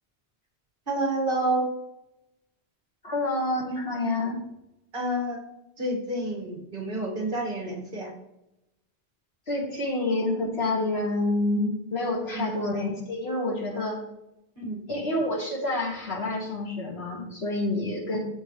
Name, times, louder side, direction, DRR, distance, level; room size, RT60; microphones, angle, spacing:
voice 1, 0.9-1.7 4.9-5.4 5.8-8.1 12.3-12.5 14.6-14.8, right 1 dB, 50° right, 0 dB, 2.2 m, -29 dB
voice 2, 3.0-4.4 9.5-14.0 14.9-18.2, left 2 dB, 65° left, -1 dB, 2.3 m, -28 dB
14.5 x 5.3 x 3.2 m, 0.89 s
omnidirectional pair, 1.1 m